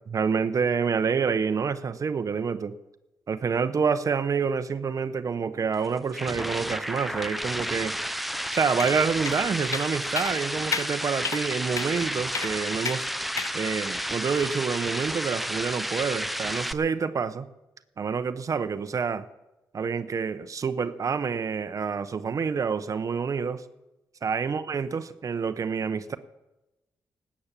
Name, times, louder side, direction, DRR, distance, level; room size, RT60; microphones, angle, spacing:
voice 1, 0.1-2.7 3.3-8.0 8.5-13.1 13.5-17.5 18.0-19.3 19.7-23.6 24.2-26.2, right 5 dB, 50° right, 11 dB, 0.9 m, -27 dB
sound 1, 5.7-16.7, equal, ahead, 0.6 m, -31 dB
sound 2, 8.8-9.0 9.3-9.4 9.7-9.9 10.2-10.3 10.7-10.9 11.2-11.4 11.8-11.9 12.3-12.5 12.8-13.0 13.4-13.5, left 6 dB, 50° left, 0.6 m, -31 dB
19.0 x 8.7 x 7.5 m, 1.0 s
cardioid pair, 85°, 7 cm